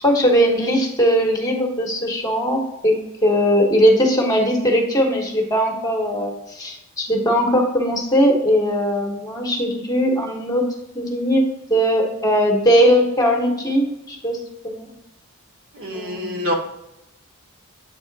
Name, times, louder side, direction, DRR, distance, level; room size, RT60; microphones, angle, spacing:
voice 1, 0.0-10.6 10.9-14.9 15.9-16.5, equal, 15° left, 0 dB, 1.1 m, -19 dB
voice 2, 15.7-16.5, equal, 65° right, 0 dB, 1.7 m, -26 dB
8.1 x 3.4 x 4.0 m, 0.90 s
head